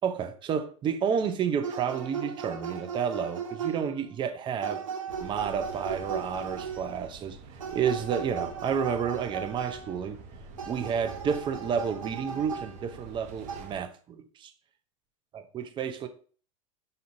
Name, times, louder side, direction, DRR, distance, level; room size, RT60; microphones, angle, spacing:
voice 1, 0.0-4.8 5.2-7.4 7.7-10.2 10.7-14.5 15.5-16.1, right 7 dB, 30° right, 0.7 m, -30 dB
sound 1, 1.6-4.1 4.6-7.0 7.6-10.0 10.6-13.1 13.5-13.6, right 6 dB, 90° right, 0.9 m, -37 dB
sound 2, 5.1-13.8, right 3 dB, 50° right, 1.1 m, -47 dB
5.9 x 2.7 x 2.7 m
hypercardioid pair, 95°, 17 cm